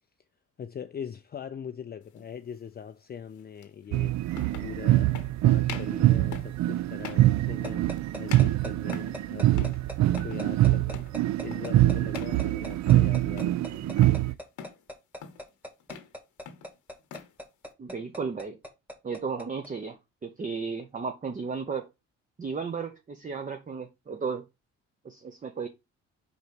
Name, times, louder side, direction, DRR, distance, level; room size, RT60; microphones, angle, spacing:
voice 1, 0.6-11.1 11.4-14.4, left 7 dB, 30° left, 0.5 m, -42 dB
sound 1, 2.1-2.3 3.6-3.7 4.3-4.7 5.1-5.3 5.6-6.0 6.3-6.6 7.0-7.3 7.6-8.0 8.3-9.2 9.5-9.8 10.1-10.4 10.9-11.2 11.5-11.8 12.1-12.4 12.7-13.1 13.4-14.2 14.6-14.8 15.2-15.5 15.8-16.1 16.4-17.3, left 7 dB, 80° left, 1.1 m, -43 dB
sound 2, 3.9-14.3, right 15 dB, 65° right, 0.5 m, -24 dB
sound 3, 7.6-19.7, left 1 dB, 5° right, 1.5 m, -38 dB
voice 2, 17.8-18.6 19.0-20.0 20.2-21.9 22.4-24.4 25.0-25.7, right 5 dB, 25° right, 0.7 m, -34 dB
4.7 x 4.0 x 5.1 m
cardioid pair, 90°, 30 cm